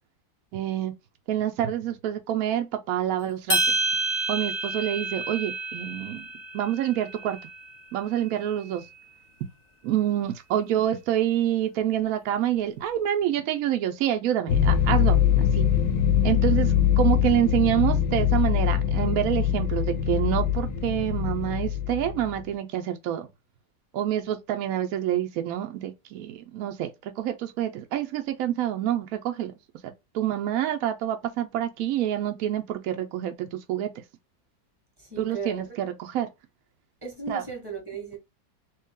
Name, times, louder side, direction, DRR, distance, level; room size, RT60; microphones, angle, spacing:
voice 1, 0.5-0.9 1.3-3.8 4.3-6.2 6.5-7.4 7.9-8.8 9.8-15.7 16.2-23.3 23.9-29.5 29.8-33.9 35.2-36.3 37.3-37.4, right 11 dB, 75° right, 0.8 m, -27 dB
sound 1, 3.5-7.9, right 3 dB, 40° left, 0.7 m, -29 dB
sound 2, 14.5-22.4, left 9 dB, 75° left, 1.0 m, -23 dB
voice 2, 35.0-35.8 37.0-38.2, right 4 dB, 15° right, 1.1 m, -36 dB
3.0 x 2.7 x 3.6 m
omnidirectional pair, 2.0 m